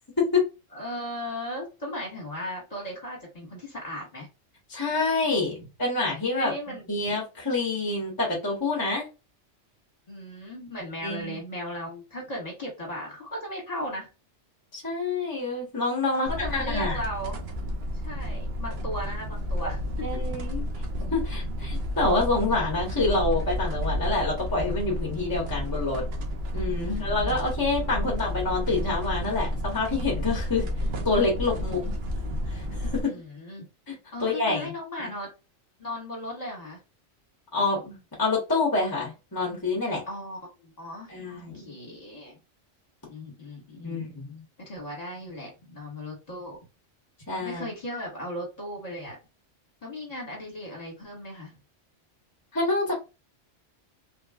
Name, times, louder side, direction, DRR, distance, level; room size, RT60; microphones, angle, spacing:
voice 1, 0.7-4.3 6.3-7.0 10.1-14.1 16.2-17.4 18.0-19.9 26.8-27.5 31.5-31.8 33.0-33.7 34.1-35.3 35.8-36.8 40.0-41.1 41.5-42.4 43.1-44.2 44.6-46.6 47.4-49.2 49.8-51.6, equal, 35° left, -2 dB, 1.3 m, -37 dB
voice 2, 4.7-6.5 6.9-9.1 11.0-11.4 14.7-17.0 20.0-20.6 21.1-26.0 26.5-30.7 31.0-31.9 32.5-33.1 33.9-34.7 35.0-35.1 37.5-40.0 41.1-41.7 43.8-44.4 47.3-47.6 52.5-52.9, left 3 dB, 20° left, -2 dB, 1.0 m, -27 dB
sound 1, 16.3-33.0, left 1 dB, 60° right, 0.9 m, -31 dB
3.3 x 2.2 x 2.3 m, 0.28 s
omnidirectional pair, 1.2 m